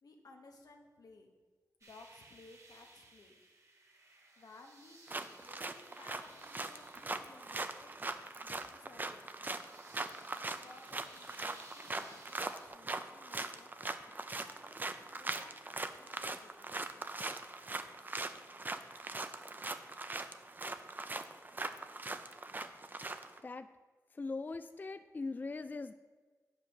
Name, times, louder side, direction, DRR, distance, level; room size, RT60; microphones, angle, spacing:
voice 1, 0.0-1.4 1.8-3.4 4.4-8.1 8.4-9.2 10.4-13.8 14.2-16.9, left 3 dB, 85° left, 3 dB, 1.2 m, -59 dB
sound 1, 1.8-12.7, right 2 dB, 55° right, 1.7 m, -60 dB
sound 2, 5.1-23.4, right 2 dB, 30° right, 0.5 m, -41 dB
voice 2, 24.1-25.9, left 3 dB, 30° left, 11 dB, 0.3 m, -40 dB
9.0 x 5.1 x 6.4 m, 1.4 s
wide cardioid pair, 85°, 6 cm